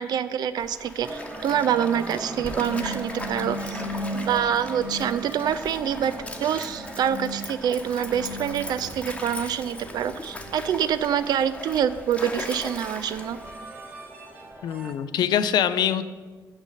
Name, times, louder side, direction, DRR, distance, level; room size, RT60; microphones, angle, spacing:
voice 1, 0.0-3.8 4.1-6.1 6.4-13.4, right 9 dB, 50° right, 13 dB, 0.4 m, -26 dB
Stream, 0.6-13.6, left 2 dB, 15° left, 1.1 m, -39 dB
sound 1, 1.0-14.9, right 1 dB, 20° right, 1.6 m, -37 dB
voice 2, 14.6-16.1, left 9 dB, 55° left, 13 dB, 0.4 m, -24 dB
6.5 x 6.3 x 6.2 m, 1.4 s
figure-of-eight pair, 40°, 9 cm